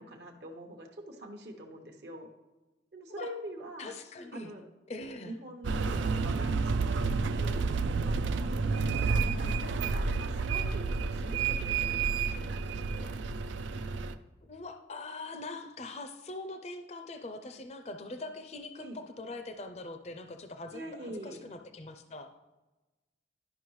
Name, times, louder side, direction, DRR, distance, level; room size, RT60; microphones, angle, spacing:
voice 1, 0.0-2.3 2.9-4.0 4.3-4.6 5.3-7.6 8.1-13.1 18.8-19.0 20.7-21.4, right 1 dB, 60° right, 4 dB, 0.9 m, -44 dB
voice 2, 3.8-4.5 4.9-5.4 14.4-22.3, left 2 dB, 35° left, 7 dB, 0.5 m, -42 dB
sound 1, 5.6-14.1, right 4 dB, 80° right, 0.4 m, -30 dB
11.0 x 5.4 x 3.1 m, 1.1 s
head